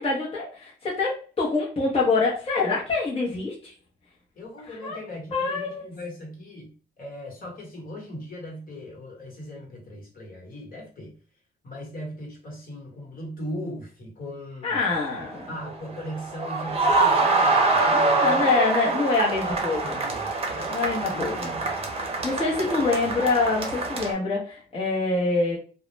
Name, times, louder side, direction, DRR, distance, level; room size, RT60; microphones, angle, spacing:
voice 1, 0.0-3.7 4.8-5.0 5.3-5.9 14.6-15.5 17.9-20.0 20.7-21.5 22.2-25.6, left 3 dB, 30° left, -6 dB, 0.8 m, -25 dB
voice 2, 4.4-11.2 11.6-14.8 15.3-18.9 19.4-21.9 22.6-23.1, equal, 45° left, -1 dB, 1.2 m, -39 dB
sound 1, 14.8-24.1, right 3 dB, 30° right, 0.7 m, -25 dB
2.3 x 2.0 x 3.0 m, 0.37 s
cardioid pair, 90°, 20 cm